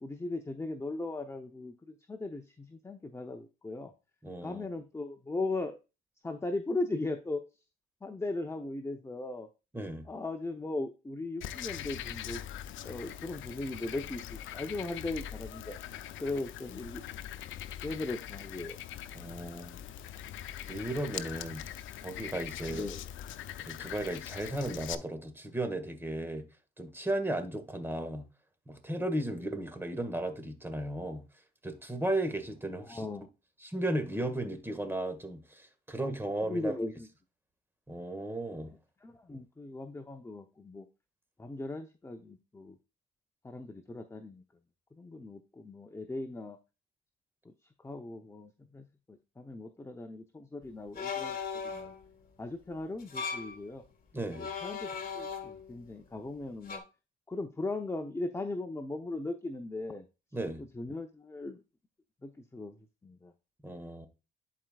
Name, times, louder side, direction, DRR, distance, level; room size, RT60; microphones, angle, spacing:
voice 1, 0.0-3.9 4.4-5.8 6.2-7.4 8.0-9.5 10.0-12.4 12.8-17.0 17.8-18.8 22.7-23.1 29.3-29.5 32.8-33.3 36.0-36.1 36.4-37.1 39.0-40.9 41.4-42.8 43.4-44.4 44.9-46.6 47.4-47.5 47.8-51.4 51.6-51.9 52.4-53.8 54.4-56.8 57.3-60.1 60.6-61.6 62.2-62.8 63.0-63.3, left 2 dB, 15° left, 0.7 m, -38 dB
voice 2, 4.2-4.7 9.7-10.1 19.1-19.8 20.7-21.7 22.0-22.8 23.6-26.4 26.8-28.3 28.7-31.2 31.6-33.1 33.6-36.7 37.9-38.7 54.1-54.5 60.3-60.6 63.6-64.1, right 1 dB, 10° right, 1.7 m, -35 dB
Frog, 11.4-25.0, left 11 dB, 75° left, 0.6 m, -42 dB
sound 1, 51.0-52.0 53.0-53.6 54.3-55.8 56.7-56.8, left 6 dB, 45° left, 1.7 m, -37 dB
11.0 x 4.7 x 2.3 m
cardioid pair, 90°, 20 cm